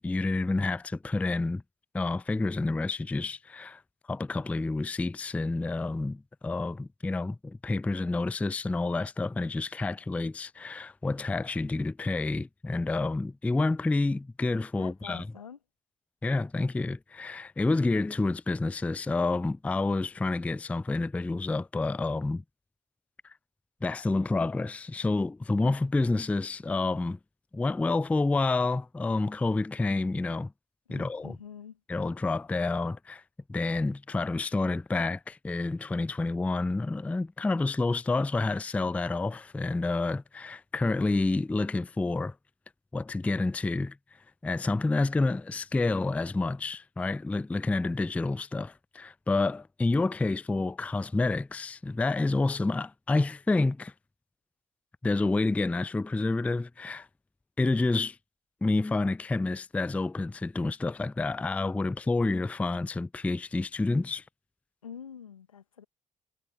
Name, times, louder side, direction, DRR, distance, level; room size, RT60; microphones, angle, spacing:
voice 1, 0.0-1.6 1.9-3.8 4.1-15.3 16.2-22.4 23.8-27.2 27.5-30.5 30.9-31.4 31.9-33.2 33.5-42.3 42.9-44.0 44.4-53.9 55.0-57.1 57.6-58.2 58.6-64.2, left 3 dB, 10° left, 0.3 m, -29 dB
voice 2, 14.8-15.6 30.9-31.8 64.8-65.8, left 8 dB, 90° left, 1.7 m, -46 dB
figure-of-eight pair, 45°, 17 cm